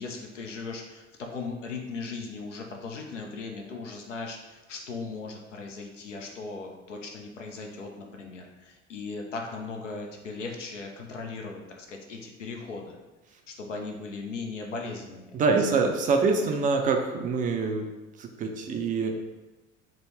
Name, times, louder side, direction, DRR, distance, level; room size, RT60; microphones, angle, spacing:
voice 1, 0.0-13.0 13.5-15.4 15.7-15.8 16.3-16.4 16.8-16.9, left 4 dB, 85° left, 1 dB, 0.5 m, -38 dB
voice 2, 15.3-17.9 18.2-19.1, right 4 dB, 25° right, 4 dB, 0.4 m, -25 dB
3.6 x 2.0 x 3.1 m, 1.1 s
figure-of-eight pair, 65°, 36 cm